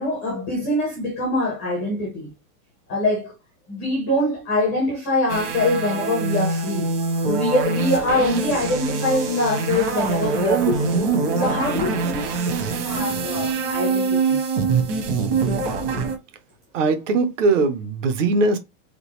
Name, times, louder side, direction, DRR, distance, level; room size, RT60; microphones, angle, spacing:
voice 1, 0.0-2.3 2.9-3.3 3.7-11.0 11.3-14.4 15.9-16.1, left 1 dB, 10° left, 0.4 m, -24 dB
sound 1, 5.3-16.2, right 4 dB, 40° right, 1.3 m, -24 dB
voice 2, 16.7-18.6, right 3 dB, 55° right, 1.1 m, -20 dB
3.9 x 3.8 x 3.1 m
supercardioid pair, 180°, 44 cm